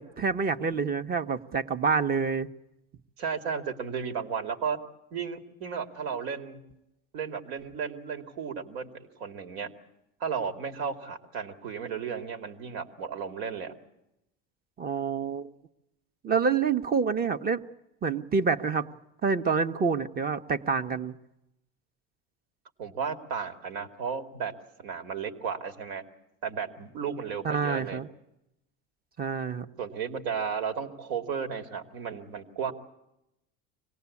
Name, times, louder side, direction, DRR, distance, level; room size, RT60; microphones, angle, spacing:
voice 1, 0.0-2.5 14.8-15.5 16.2-17.6 18.0-18.9 19.2-21.1 27.4-28.1 29.2-29.7, right 5 dB, 30° right, 9 dB, 1.1 m, -27 dB
voice 2, 3.2-4.8 5.1-6.6 7.1-9.7 10.2-13.7 22.8-24.5 24.8-26.0 26.4-28.0 29.8-32.7, right 6 dB, 80° right, 6 dB, 2.5 m, -34 dB
25.5 x 18.0 x 8.5 m, 0.88 s
supercardioid pair, 95°, 30 cm